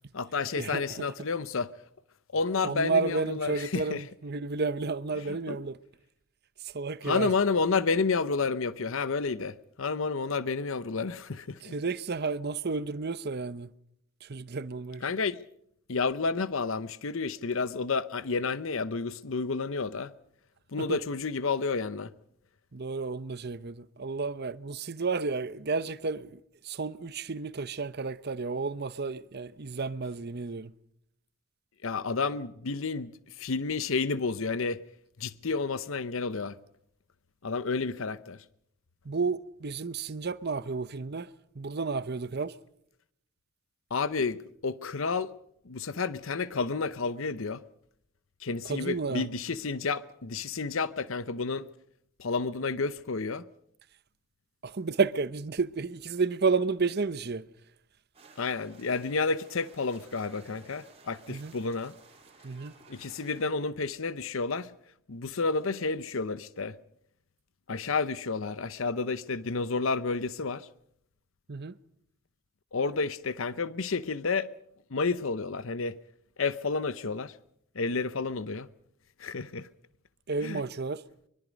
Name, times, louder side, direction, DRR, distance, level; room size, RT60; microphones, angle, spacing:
voice 1, 0.1-1.7 2.3-4.0 5.2-5.6 7.0-11.7 15.0-15.4 15.9-20.1 20.7-22.1 31.8-34.8 35.2-36.6 37.4-38.4 43.9-45.3 45.6-47.6 48.4-51.7 52.2-53.4 58.4-61.9 62.9-64.7 65.1-66.8 67.7-70.7 72.7-74.5 74.9-76.0 76.4-77.4 77.7-78.7 79.2-79.7 80.4-80.6, left 4 dB, 65° left, 0.8 m, -30 dB
voice 2, 2.6-5.8 6.6-7.3 11.6-13.7 14.2-15.0 20.8-21.0 22.7-30.7 39.0-41.3 41.6-42.5 48.6-49.3 54.6-57.4 61.3-61.5 62.4-62.7 71.5-71.8 80.3-81.0, right 4 dB, 50° right, 0.8 m, -31 dB
sound 1, 58.1-63.5, right 4 dB, 30° right, 4.0 m, -56 dB
24.5 x 22.5 x 5.2 m
head